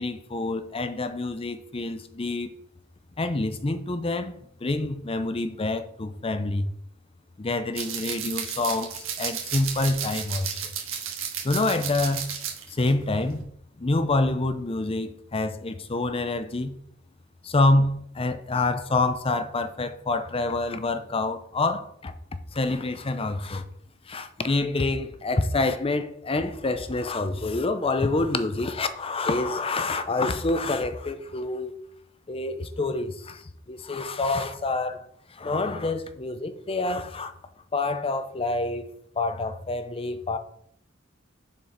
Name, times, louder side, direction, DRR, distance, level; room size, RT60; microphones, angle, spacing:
voice 1, 0.0-2.5 3.2-6.7 7.4-10.6 11.4-12.2 12.7-13.4 13.8-16.7 17.4-22.1 22.5-23.6 24.1-31.7 32.3-33.4 33.7-35.0 35.3-37.3 37.7-38.9 39.2-40.4, left 2 dB, 30° left, 0.6 m, -27 dB
sound 1, 7.7-12.9 13.2-13.4, right 8 dB, 75° right, 1.6 m, -33 dB
7.2 x 4.5 x 5.1 m
head